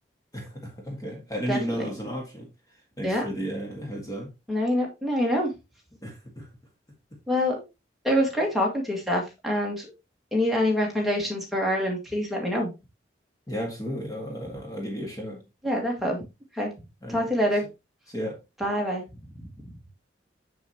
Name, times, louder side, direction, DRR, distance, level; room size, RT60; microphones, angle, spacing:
voice 1, 0.3-2.5 3.0-4.3 6.0-6.5 13.5-15.4 17.0-17.3 18.1-18.4, equal, 20° left, 1.7 m, -33 dB
voice 2, 1.5-1.9 3.0-3.3 4.5-5.5 7.3-7.6 8.0-9.9 10.3-12.7 15.6-16.2 16.5-16.7 17.1-17.6 18.6-19.0, equal, ahead, 2.0 m, -25 dB
7.2 x 7.1 x 2.9 m
head